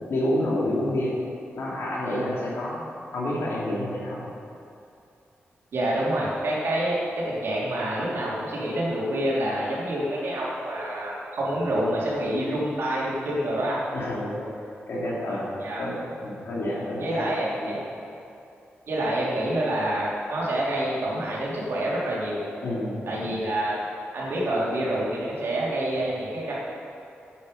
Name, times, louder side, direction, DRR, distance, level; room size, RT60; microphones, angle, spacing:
voice 1, 0.1-1.1 1.5-2.8 3.1-4.3 13.9-14.5 14.9-15.5 15.8-17.8 22.6-23.4, left 1 dB, 75° left, -5 dB, 3.0 m, -29 dB
voice 2, 5.7-7.0 7.3-13.8 15.0-15.1 15.6-15.8 17.0-17.8 18.9-22.4 23.1-23.7 24.1-26.6, right 1 dB, 70° right, -6 dB, 3.0 m, -27 dB
10.0 x 9.1 x 5.4 m, 2.7 s
wide cardioid pair, 170°, 4 cm